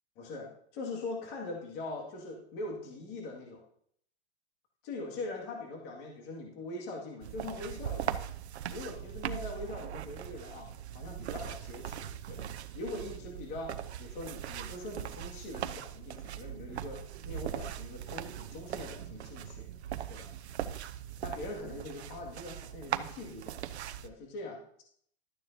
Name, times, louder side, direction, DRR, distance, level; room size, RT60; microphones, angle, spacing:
voice 1, 0.2-3.6 4.8-8.1 8.7-12.5 12.7-19.7 20.1-20.3 21.2-23.6 24.0-24.8, left 2 dB, 35° left, 0 dB, 2.2 m, -42 dB
sound 1, 7.2-24.1, right 10 dB, 90° right, 0.8 m, -40 dB
12.5 x 9.4 x 2.8 m, 0.65 s
hypercardioid pair, 155°, 32 cm